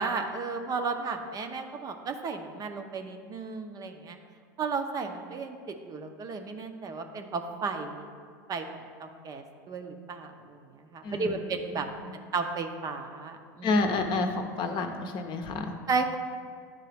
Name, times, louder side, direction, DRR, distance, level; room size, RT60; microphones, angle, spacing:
voice 1, 0.0-4.2 4.6-5.6 5.9-8.1 8.5-8.7 9.0-11.9 12.1-13.7 15.9-16.2, right 4 dB, 35° right, 6 dB, 0.6 m, -33 dB
voice 2, 11.0-12.2 13.6-15.7, left 3 dB, 45° left, 5 dB, 0.7 m, -30 dB
10.5 x 3.7 x 3.4 m, 2.1 s
hypercardioid pair, 95°, 11 cm